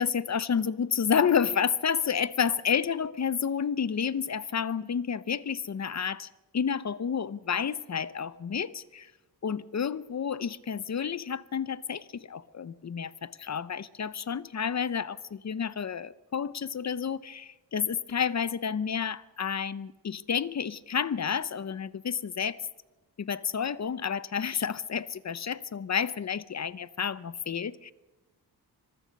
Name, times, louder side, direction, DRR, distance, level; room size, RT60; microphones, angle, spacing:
voice 1, 0.0-9.1 9.4-22.6 23.2-27.9, left 7 dB, 40° left, 0.8 m, -30 dB
26.0 x 20.0 x 5.3 m
wide cardioid pair, 95°, 40 cm